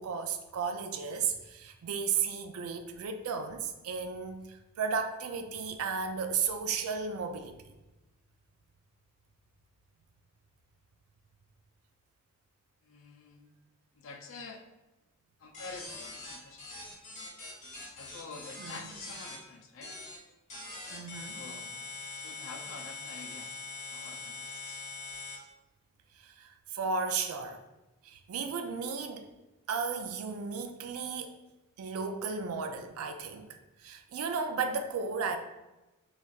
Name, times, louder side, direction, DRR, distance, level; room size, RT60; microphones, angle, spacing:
voice 1, 0.0-7.6 18.6-18.8 20.9-21.4 26.1-27.6 28.0-29.3 29.7-31.4 31.8-35.4, right 5 dB, 90° right, 7 dB, 0.4 m, -34 dB
voice 2, 12.8-13.5 13.9-14.6 15.4-16.9 17.9-20.0 21.3-21.8 22.2-23.5 23.9-24.8, left 4 dB, 65° left, 4 dB, 0.4 m, -48 dB
sound 1, 15.5-19.4 19.8-20.2 20.5-25.4, left 3 dB, 35° left, 0.7 m, -43 dB
4.0 x 2.4 x 2.3 m, 1.0 s
head